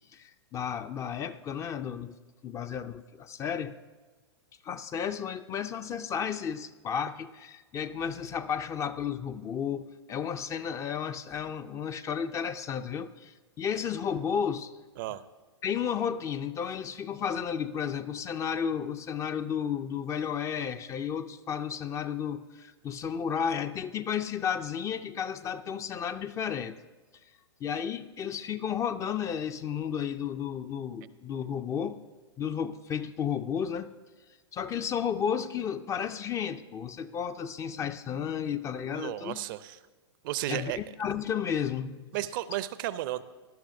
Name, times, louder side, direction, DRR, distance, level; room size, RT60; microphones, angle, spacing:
voice 1, 0.1-2.2 2.4-3.8 4.6-14.7 15.6-26.8 27.6-32.0 32.4-33.9 34.5-39.4 40.5-42.0, left 8 dB, 20° left, 11 dB, 0.4 m, -33 dB
voice 2, 38.9-39.8 40.2-40.8 42.1-43.2, right 14 dB, 45° right, 16 dB, 0.5 m, -33 dB
18.5 x 11.5 x 2.6 m, 1.3 s
figure-of-eight pair, 105°, 15 cm